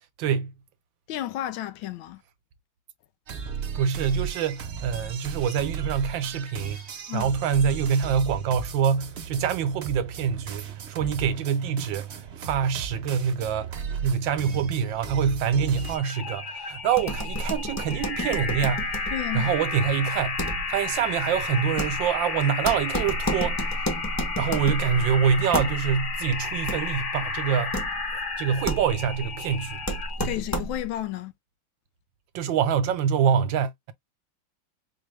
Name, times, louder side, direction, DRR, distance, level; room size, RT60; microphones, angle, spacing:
voice 1, 0.2-0.5 3.7-6.8 7.1-18.9 19.3-20.4 20.7-23.8 24.4-27.8 28.4-29.8 30.2-30.3 32.3-33.9, right 7 dB, 75° right, 1.4 m, -25 dB
voice 2, 1.1-2.2 7.1-7.3 19.1-19.5 30.2-31.3, left 13 dB, 80° left, 1.4 m, -32 dB
sound 1, 3.3-16.0, right 6 dB, 50° right, 0.8 m, -36 dB
sound 2, 15.8-30.4, left 4 dB, 45° left, 1.1 m, -32 dB
sound 3, 16.9-31.0, equal, 15° left, 0.5 m, -32 dB
4.9 x 2.2 x 3.2 m
omnidirectional pair, 2.1 m